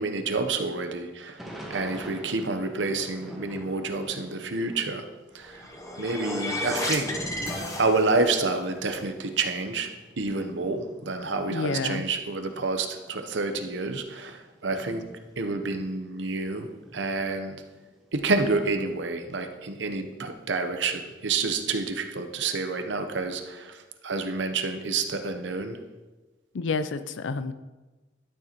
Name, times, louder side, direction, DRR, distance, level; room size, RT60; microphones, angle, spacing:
voice 1, 0.0-1.4 1.7-5.0 5.3-5.7 6.0-7.1 7.8-9.9 10.2-15.0 15.4-17.6 18.1-25.8, right 3 dB, 70° right, 7 dB, 0.8 m, -28 dB
Thunder / Rain, 1.4-5.0 5.3-12.4 13.0-13.1 13.3-16.4 16.8-18.5, equal, ahead, 1.4 m, -46 dB
sound 1, 5.4-8.4, left 1 dB, 20° left, 0.8 m, -32 dB
voice 2, 11.5-12.0 26.5-27.5, left 4 dB, 85° left, 12 dB, 0.5 m, -29 dB
12.0 x 6.5 x 3.0 m, 1.2 s
head